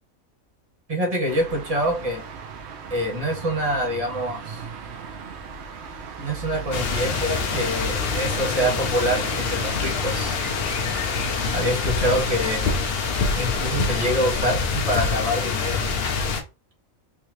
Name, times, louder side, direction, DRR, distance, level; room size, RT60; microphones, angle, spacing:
voice 1, 0.9-2.2 2.9-4.6 6.2-10.4 11.5-12.7 13.3-15.8, equal, 30° right, -1 dB, 1.1 m, -25 dB
sound 1, 1.3-14.0, right 5 dB, 60° right, 0.8 m, -38 dB
sound 2, 6.7-16.4, left 5 dB, 60° left, 0.7 m, -25 dB
3.5 x 2.8 x 3.0 m, 0.30 s
omnidirectional pair, 1.5 m